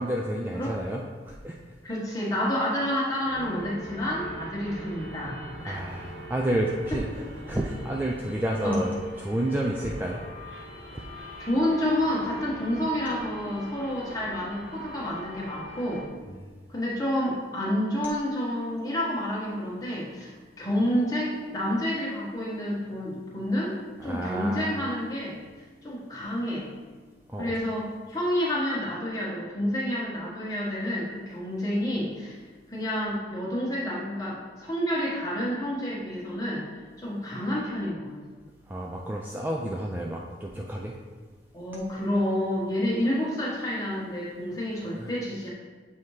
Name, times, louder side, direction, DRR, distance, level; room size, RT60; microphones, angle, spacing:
voice 1, 0.0-1.6 5.6-7.1 7.5-10.2 10.9-11.0 16.3-16.5 24.0-24.7 27.3-27.6 38.7-40.9 45.0-45.1, right 1 dB, 10° right, -2 dB, 0.3 m, -30 dB
voice 2, 1.8-5.8 8.6-8.8 11.4-16.1 16.7-20.3 20.6-23.8 24.0-25.4 25.8-26.7 27.4-32.4 32.7-36.6 37.0-38.1 41.5-45.5, left 1 dB, 20° left, -6 dB, 1.3 m, -29 dB
sound 1, 3.2-16.1, equal, 90° right, 1.1 m, -42 dB
7.5 x 2.8 x 4.7 m, 1.4 s
head